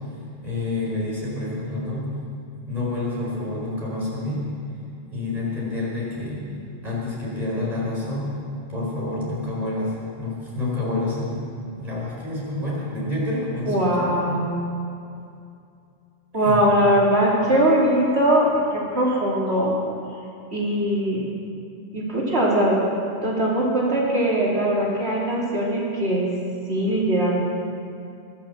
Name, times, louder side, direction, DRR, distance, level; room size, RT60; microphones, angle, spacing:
voice 1, 0.4-2.1 2.7-4.4 5.1-6.4 6.8-8.3 8.7-11.4 11.8-14.2 16.4-16.8, left 2 dB, 35° right, -6 dB, 5.2 m, -28 dB
voice 2, 13.7-14.5 16.3-19.7 20.5-21.2 21.9-22.8 23.2-26.3 26.7-27.4, right 1 dB, 65° right, -5 dB, 3.2 m, -21 dB
21.5 x 7.6 x 7.2 m, 2.5 s
omnidirectional pair, 1.2 m